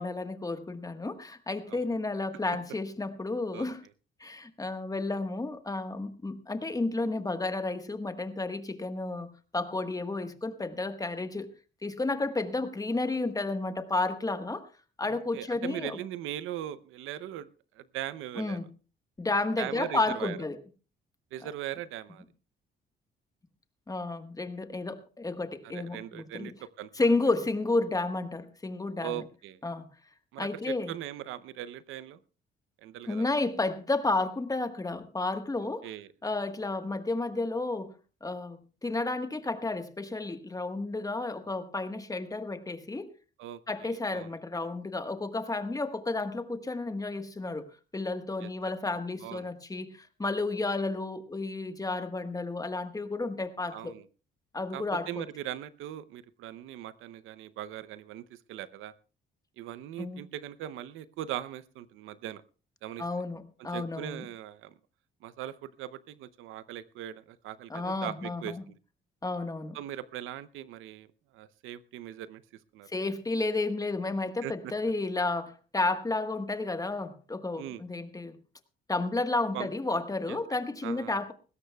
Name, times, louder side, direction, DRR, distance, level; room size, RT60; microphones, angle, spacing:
voice 1, 0.0-3.8 4.2-11.5 11.8-14.7 15.0-16.0 18.4-18.7 19.2-20.6 23.9-26.5 26.9-29.2 29.6-29.9 30.4-30.9 33.1-35.9 36.2-37.9 38.2-43.1 43.7-47.7 47.9-53.9 54.5-55.2 60.0-60.2 63.0-64.3 67.7-68.6 69.2-69.8 72.9-78.4 78.9-81.3, left 2 dB, 20° left, 9 dB, 1.3 m, -32 dB
voice 2, 15.1-17.5 17.7-18.6 19.6-20.4 21.3-22.2 25.7-26.9 29.0-29.6 30.3-32.2 32.8-33.2 35.6-36.1 43.4-44.3 48.4-48.5 49.2-49.5 53.7-54.1 54.7-58.9 59.6-62.4 62.8-63.0 63.6-64.7 65.2-68.7 69.7-71.1 71.3-72.4 72.7-72.9 74.4-74.7 77.6-77.8 79.5-79.7 80.3-80.4 80.8-81.2, right 12 dB, 90° right, 16 dB, 0.7 m, -40 dB
20.0 x 16.5 x 2.3 m, 0.36 s
cardioid pair, 90°, 20 cm